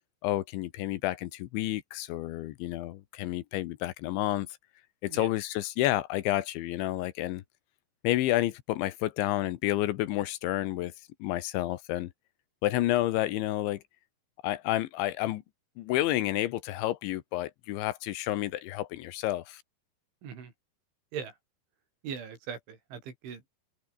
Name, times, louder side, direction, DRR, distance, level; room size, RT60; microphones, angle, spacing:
voice 1, 0.2-4.5 5.0-7.4 8.0-10.9 11.2-12.1 12.6-13.8 14.4-15.4 15.8-19.6, left 15 dB, 75° left, 3.3 m, -30 dB
voice 2, 20.2-20.5 21.1-21.4 22.0-23.5, right 7 dB, 70° right, 7.1 m, -40 dB
open air
omnidirectional pair, 5.6 m